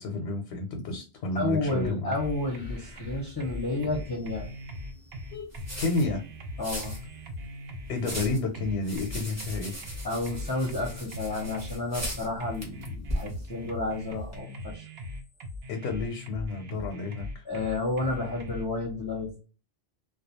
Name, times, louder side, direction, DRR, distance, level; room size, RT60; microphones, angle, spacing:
voice 1, 0.0-2.2 2.7-3.3 5.3-5.5 5.8-6.2 7.9-9.7 15.7-17.4, left 3 dB, 85° left, 3 dB, 0.8 m, -31 dB
voice 2, 1.3-5.3 6.6-7.0 10.0-14.9 17.5-19.4, left 2 dB, 25° left, -2 dB, 0.5 m, -31 dB
sound 1, 1.7-18.7, left 1 dB, 75° right, 0.8 m, -40 dB
sound 2, 2.2-14.4, equal, 15° right, 0.7 m, -41 dB
2.3 x 2.3 x 2.7 m, 0.35 s
omnidirectional pair, 1.1 m